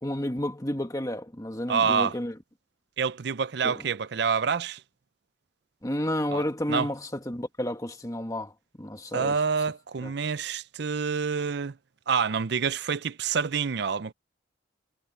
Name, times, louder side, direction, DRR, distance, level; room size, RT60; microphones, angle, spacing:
voice 1, 0.0-2.3 3.6-3.8 5.8-8.5 8.8-9.4 10.0-10.1, left 1 dB, 20° left, 1.9 m, -31 dB
voice 2, 1.7-2.1 3.0-4.8 6.3-6.4 6.7-6.9 9.1-11.8 12.1-14.1, right 6 dB, 55° right, 0.5 m, -27 dB
head